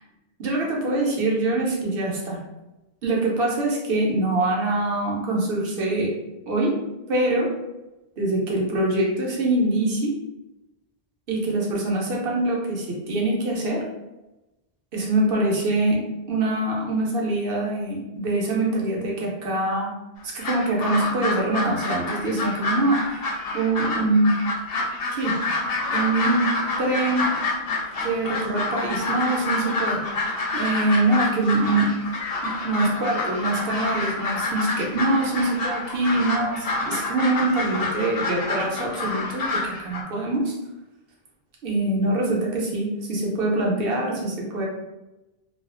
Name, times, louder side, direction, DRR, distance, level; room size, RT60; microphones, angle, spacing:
voice 1, 0.4-2.4 3.0-6.1 6.5-6.8 7.1-7.5 8.2-10.1 11.3-13.8 14.9-19.9 20.2-23.3 23.5-24.4 25.1-25.4 25.9-27.4 28.0-30.0 30.5-32.0 32.4-40.5 41.6-44.6, right 2 dB, 70° right, -3 dB, 0.9 m, -24 dB
sound 1, 20.2-40.0, left 2 dB, 70° left, 0.8 m, -28 dB
2.4 x 2.3 x 2.4 m, 1.0 s
omnidirectional pair, 1.0 m